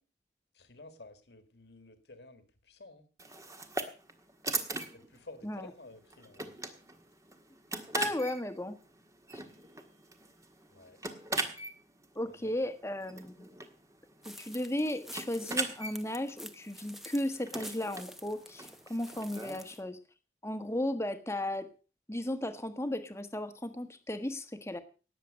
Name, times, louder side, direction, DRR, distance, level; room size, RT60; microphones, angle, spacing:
voice 1, 0.5-3.0 4.9-6.4 10.7-11.0 12.3-12.8, left 2 dB, 75° left, 10 dB, 1.9 m, -52 dB
sound 1, 3.2-19.7, right 2 dB, 20° right, 1.5 m, -41 dB
voice 2, 7.9-8.8 9.3-9.4 12.1-13.5 14.2-20.0 20.4-21.7 22.1-24.8, left 1 dB, 15° left, 9 dB, 1.3 m, -35 dB
sound 2, 14.2-19.8, equal, ahead, 1.0 m, -49 dB
18.5 x 7.6 x 6.4 m, 0.37 s
head